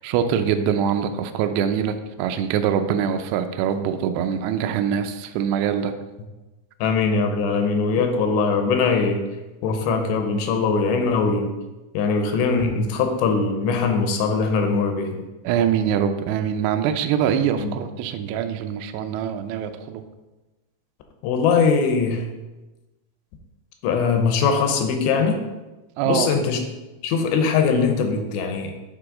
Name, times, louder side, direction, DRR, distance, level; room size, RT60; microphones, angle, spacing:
voice 1, 0.0-5.9 15.4-20.0 26.0-26.3, right 8 dB, 80° right, 8 dB, 2.5 m, -23 dB
voice 2, 6.8-9.2 9.6-11.5 11.9-15.1 17.6-17.7 21.2-22.3 23.8-25.4 26.1-26.6 27.0-28.7, left 5 dB, 80° left, 4 dB, 2.9 m, -21 dB
8.4 x 4.8 x 3.7 m, 1.1 s
omnidirectional pair, 5.2 m